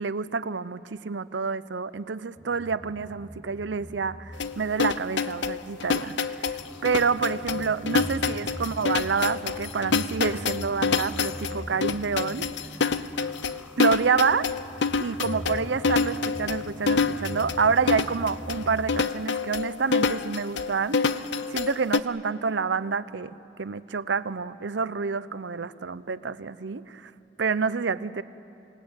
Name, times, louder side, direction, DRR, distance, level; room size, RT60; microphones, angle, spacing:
voice 1, 0.0-6.5 6.8-12.5 13.8-14.5 15.0-21.1 21.5-27.1 27.4-28.2, right 5 dB, 75° right, 15 dB, 0.7 m, -28 dB
sound 1, 2.4-19.0, equal, 5° right, 0.8 m, -42 dB
sound 2, 4.4-22.0, left 5 dB, 70° left, 0.7 m, -27 dB
26.5 x 18.5 x 8.9 m, 2.7 s
head